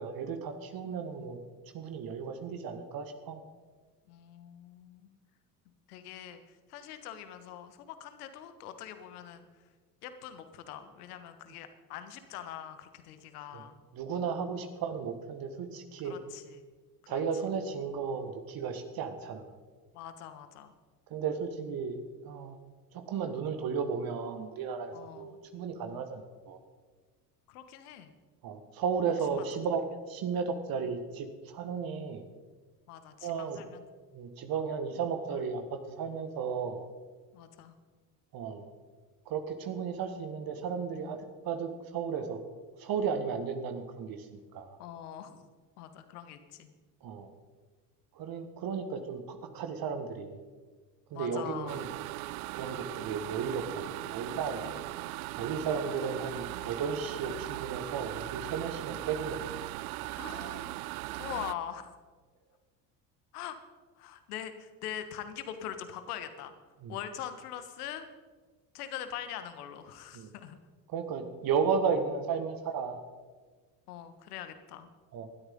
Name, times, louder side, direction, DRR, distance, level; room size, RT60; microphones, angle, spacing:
voice 1, 0.0-1.4 1.7-3.4 13.5-13.6 13.9-16.2 17.1-19.5 21.1-22.0 22.2-22.6 22.9-26.6 28.4-32.2 33.2-33.6 34.1-36.9 38.3-38.7 39.3-41.2 41.5-42.4 42.8-44.3 44.5-44.8 47.0-47.3 48.2-50.4 51.1-51.9 52.5-54.7 55.4-59.4 60.3-60.5 66.8-66.9 70.1-70.3 70.9-73.0 75.1-75.3, right 6 dB, 45° right, 7 dB, 1.7 m, -34 dB
voice 2, 4.1-5.1 5.9-9.5 10.0-13.8 16.0-16.6 17.0-17.2 19.9-20.7 24.9-25.4 27.5-28.1 29.3-29.4 32.9-33.8 37.3-37.7 44.8-45.4 45.8-46.7 48.4-48.7 51.1-51.8 52.6-52.8 54.6-54.8 55.3-55.4 60.1-60.7 61.2-61.9 63.3-63.6 64.0-66.5 66.9-68.0 68.7-70.6 73.9-74.9, left 10 dB, 70° left, 9 dB, 1.5 m, -43 dB
sound 1, 51.7-61.5, right 18 dB, 65° right, 0.5 m, -39 dB
20.0 x 13.0 x 3.8 m, 1.4 s
figure-of-eight pair, 65°, 48 cm